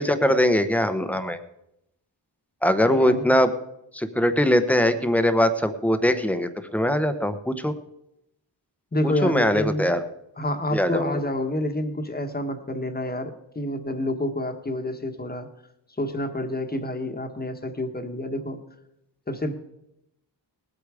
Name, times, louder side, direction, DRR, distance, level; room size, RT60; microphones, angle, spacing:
voice 1, 0.0-1.4 2.6-3.5 3.9-7.7 9.2-10.0 10.7-11.2, equal, 5° left, 9 dB, 0.9 m, -21 dB
voice 2, 2.9-3.4 8.9-9.9 10.4-15.5 16.0-18.6 19.3-19.5, left 1 dB, 20° left, 6 dB, 1.3 m, -28 dB
19.5 x 8.3 x 5.0 m, 0.83 s
wide cardioid pair, 130°, 43 cm